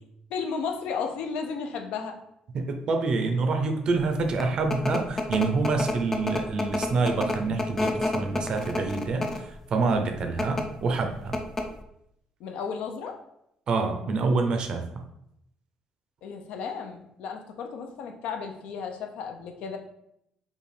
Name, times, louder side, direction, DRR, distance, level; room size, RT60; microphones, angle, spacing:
voice 1, 0.3-2.2 12.4-13.2 16.2-19.8, left 5 dB, 75° left, 4 dB, 0.6 m, -34 dB
voice 2, 2.5-11.4 13.7-15.0, right 3 dB, 40° right, 6 dB, 0.5 m, -27 dB
sound 1, 4.1-9.5 10.2-10.6 11.0-11.1 11.3-11.8, left 2 dB, 15° left, 0.4 m, -29 dB
5.3 x 2.4 x 3.2 m, 0.77 s
cardioid pair, 160°, 2 cm